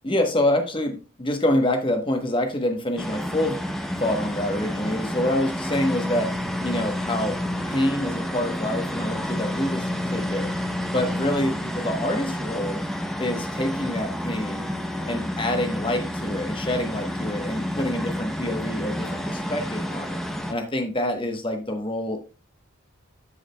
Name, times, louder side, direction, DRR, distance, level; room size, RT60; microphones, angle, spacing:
voice 1, 0.0-3.6 4.0-7.4 7.7-10.5 10.9-12.8 13.2-14.7 15.0-20.2 20.5-22.2, left 1 dB, 25° left, 4 dB, 1.0 m, -26 dB
sound 1, 3.0-20.5, left 1 dB, ahead, 0.6 m, -29 dB
13.5 x 4.8 x 2.2 m, 0.33 s
head